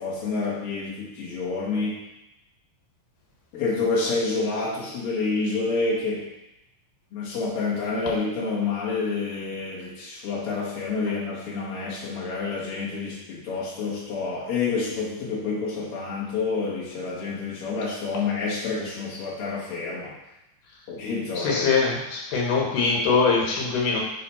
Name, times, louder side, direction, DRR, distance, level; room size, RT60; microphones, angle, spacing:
voice 1, 0.0-2.0 3.5-6.3 7.1-20.1 20.9-21.7, left 4 dB, 50° left, -6 dB, 2.4 m, -28 dB
voice 2, 21.4-24.0, left 4 dB, 85° left, -2 dB, 3.1 m, -22 dB
7.6 x 3.1 x 5.7 m, 0.92 s
omnidirectional pair, 3.7 m